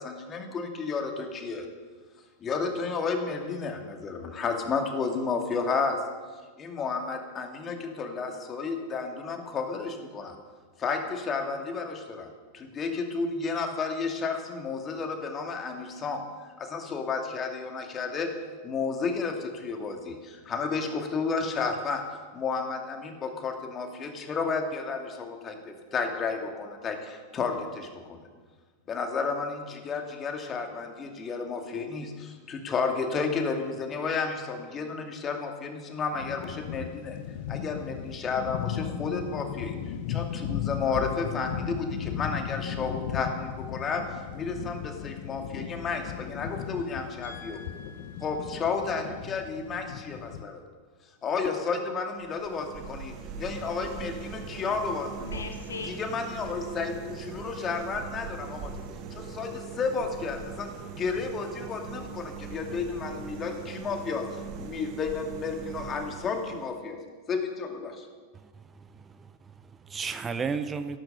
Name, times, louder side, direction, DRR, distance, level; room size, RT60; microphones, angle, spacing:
voice 1, 0.0-1.7 2.4-6.0 6.6-10.3 10.8-16.2 16.6-18.3 18.6-22.0 22.3-28.3 28.9-37.2 37.5-39.7 40.1-44.0 44.3-47.6 48.2-50.6 51.2-55.4 55.9-58.7 59.1-60.7 61.0-67.0 67.3-68.1, left 4 dB, 25° left, 3 dB, 2.4 m, -32 dB
sound 1, 36.1-50.4, left 9 dB, 50° left, 0.9 m, -36 dB
voice 2, 47.2-48.5 55.2-56.0, left 4 dB, 70° left, 4 dB, 2.1 m, -42 dB
sound 2, 52.2-66.9, right 5 dB, 40° right, 1.6 m, -41 dB
voice 3, 68.3-71.0, right 5 dB, 20° right, 12 dB, 0.7 m, -35 dB
14.0 x 12.0 x 6.8 m, 1.4 s
figure-of-eight pair, 90°, 0 cm